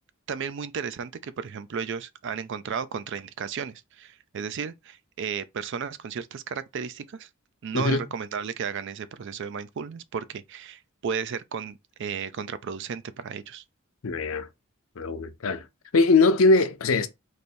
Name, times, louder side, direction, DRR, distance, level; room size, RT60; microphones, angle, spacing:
voice 1, 0.3-7.3 7.6-13.6, right 6 dB, 60° right, 0.4 m, -34 dB
voice 2, 14.0-14.5 15.0-15.6 15.9-17.1, left 3 dB, 70° left, 0.6 m, -21 dB
3.3 x 2.6 x 4.3 m
head